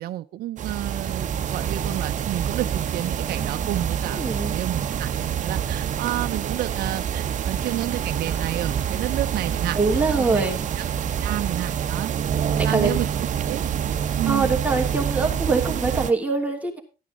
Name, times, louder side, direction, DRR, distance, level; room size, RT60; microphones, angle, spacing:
voice 1, 0.0-9.8 10.2-10.5 10.8-10.9 11.2-12.1 12.6-13.1 13.5-13.6 14.2-14.5, right 14 dB, 65° right, 0.7 m, -30 dB
sound 1, 0.6-16.1, right 8 dB, 45° right, 1.1 m, -26 dB
sound 2, 3.2-13.2, left 2 dB, 65° left, 6.9 m, -51 dB
voice 2, 4.1-4.5 9.7-10.7 12.5-12.9 14.3-16.8, right 3 dB, 10° right, 2.8 m, -23 dB
14.0 x 9.4 x 3.8 m
cardioid pair, 110°, 17 cm